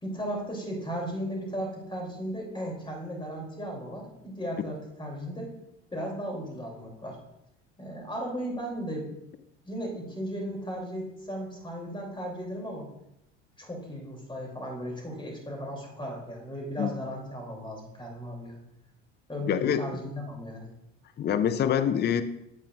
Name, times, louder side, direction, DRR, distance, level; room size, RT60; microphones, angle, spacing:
voice 1, 0.0-5.5 5.9-7.2 7.8-9.0 9.6-12.9 13.6-18.6 19.3-20.7, equal, 15° left, -1 dB, 3.1 m, -36 dB
voice 2, 19.5-20.0 21.2-22.2, left 8 dB, 30° left, 12 dB, 0.5 m, -25 dB
8.6 x 8.4 x 2.5 m, 0.83 s
hypercardioid pair, 70°, 36 cm